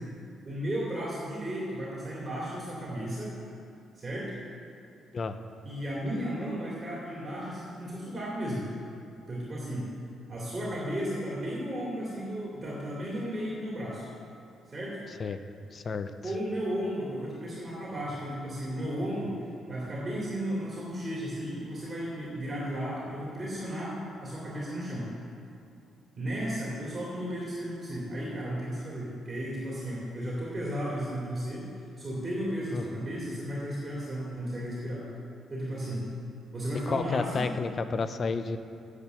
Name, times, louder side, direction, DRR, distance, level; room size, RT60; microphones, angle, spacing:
voice 1, 0.4-3.3 3.9-4.3 5.6-8.6 9.3-9.9 10.3-14.1 14.7-15.0 16.2-19.3 19.7-25.1 26.1-31.7 32.0-35.1 35.5-36.1 36.5-37.5, equal, 30° right, -6 dB, 2.9 m, -34 dB
voice 2, 15.7-16.1 32.7-33.1 36.9-38.6, left 4 dB, 45° left, 11 dB, 0.6 m, -31 dB
8.8 x 8.2 x 6.9 m, 2.5 s
cardioid pair, 90°, 0 cm